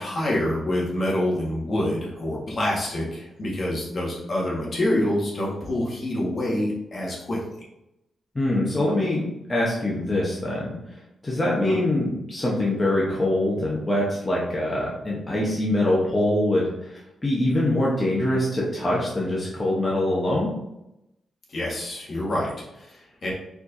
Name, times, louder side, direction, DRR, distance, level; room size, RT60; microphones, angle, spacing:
voice 1, 0.0-7.4 11.6-11.8 21.5-23.3, left 1 dB, 45° left, -3 dB, 1.5 m, -26 dB
voice 2, 8.3-9.2 9.5-20.5, left 1 dB, 20° left, -5 dB, 0.9 m, -24 dB
4.5 x 4.3 x 2.6 m, 0.87 s
cardioid pair, 120°, 0 cm